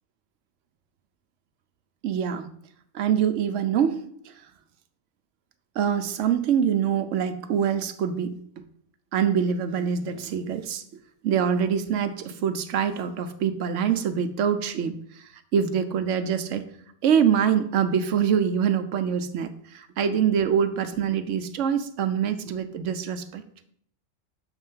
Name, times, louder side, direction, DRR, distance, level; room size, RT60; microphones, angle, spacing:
voice 1, 2.0-2.5 2.9-4.0 5.8-8.6 9.1-10.8 11.2-16.7 17.0-23.4, right 8 dB, 75° right, 9 dB, 1.0 m, -25 dB
7.2 x 3.2 x 5.4 m, 0.66 s
omnidirectional pair, 1.3 m